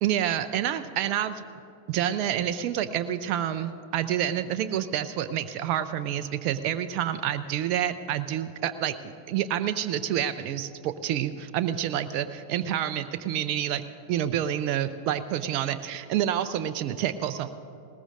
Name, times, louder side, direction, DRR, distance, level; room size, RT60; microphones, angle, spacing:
voice 1, 0.0-1.4 1.9-13.8 14.1-17.5, right 10 dB, 45° right, 10 dB, 0.5 m, -28 dB
19.5 x 19.5 x 2.6 m, 2.7 s
figure-of-eight pair, 90°, 0 cm